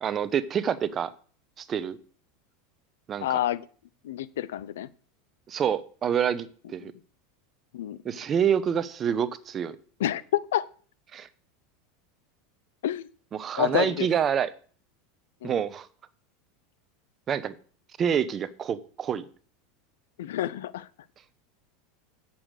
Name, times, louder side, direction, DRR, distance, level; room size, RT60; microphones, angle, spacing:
voice 1, 0.0-1.1 1.6-2.0 3.1-3.4 5.5-6.5 6.7-6.9 8.0-9.8 11.1-11.3 13.3-14.5 15.4-15.9 17.3-17.5 18.0-19.2, right 8 dB, 30° right, 0.9 m, -27 dB
voice 2, 3.2-3.6 4.0-4.9 6.8-6.9 7.7-8.0 10.0-10.7 12.8-13.1 13.6-14.1 15.4-15.5 20.2-20.9, left 12 dB, 85° left, 0.6 m, -28 dB
8.7 x 7.1 x 6.4 m
supercardioid pair, 115°, 0 cm